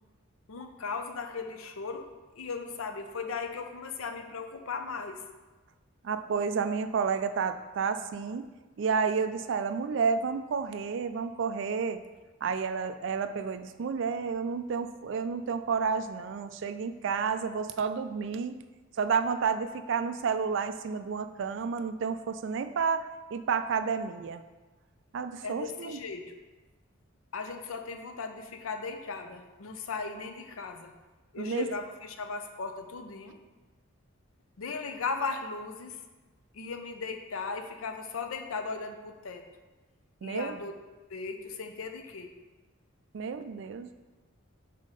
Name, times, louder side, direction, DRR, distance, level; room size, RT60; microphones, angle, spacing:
voice 1, 0.5-2.1 2.4-5.2 25.4-26.3 27.3-30.9 31.3-33.4 34.6-36.0 36.5-39.4 40.2-40.8 41.1-42.3, left 4 dB, 75° left, 6 dB, 0.6 m, -37 dB
voice 2, 6.0-8.5 8.8-12.0 12.4-18.6 19.0-23.1 23.3-24.4 25.1-26.0 31.4-31.7 40.2-40.5 43.1-43.9, right 5 dB, 60° right, 10 dB, 0.3 m, -30 dB
5.6 x 3.7 x 5.2 m, 1.2 s
head